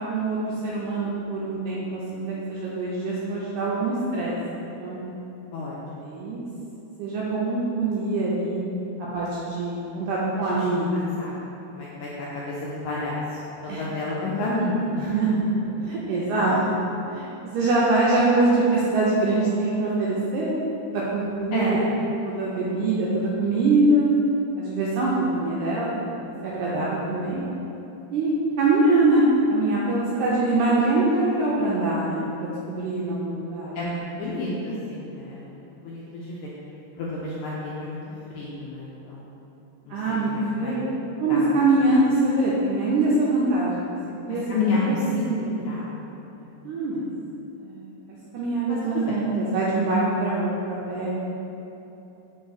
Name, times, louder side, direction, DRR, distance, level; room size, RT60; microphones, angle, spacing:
voice 1, 0.6-4.4 4.8-5.0 6.0-6.4 7.0-8.6 9.1-11.0 13.7-13.8 15.0-15.5 15.8-16.8 17.1-17.3 17.5-20.5 20.9-21.8 22.2-24.1 24.6-25.9 26.4-27.4 28.1-28.3 28.6-33.8 39.9-40.3 40.6-40.9 41.2-44.0 44.3-44.4 45.3-45.5 46.6-47.1 47.6-51.1, right 2 dB, 85° right, -6 dB, 1.7 m, -23 dB
voice 2, 5.5-6.0 10.4-10.8 11.2-11.3 11.7-15.0 16.4-16.7 21.5-21.8 33.7-36.5 37.0-38.0 38.3-39.3 39.8-40.0 40.3-40.8 41.3-41.5 41.8-42.0 44.5-45.9 46.4-46.6 48.9-49.1, left 2 dB, 80° left, -6 dB, 1.7 m, -30 dB
5.3 x 2.5 x 3.9 m, 2.9 s
omnidirectional pair, 3.9 m